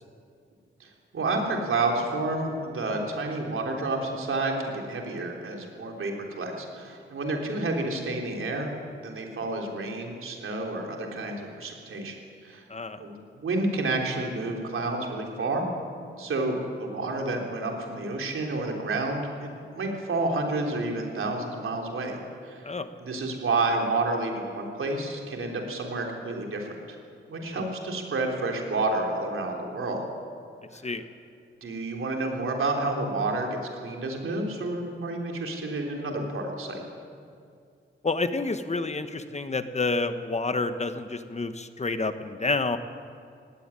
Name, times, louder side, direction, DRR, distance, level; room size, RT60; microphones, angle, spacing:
voice 1, 0.8-8.7 9.0-12.1 12.4-12.6 13.0-15.7 16.2-22.2 22.4-22.6 23.0-27.0 27.3-30.1 31.6-36.8, right 2 dB, 85° right, 1 dB, 3.7 m, -30 dB
voice 2, 38.0-42.8, left 3 dB, 35° left, 10 dB, 1.1 m, -29 dB
18.0 x 16.0 x 9.9 m, 2.4 s
wide cardioid pair, 105°, 21 cm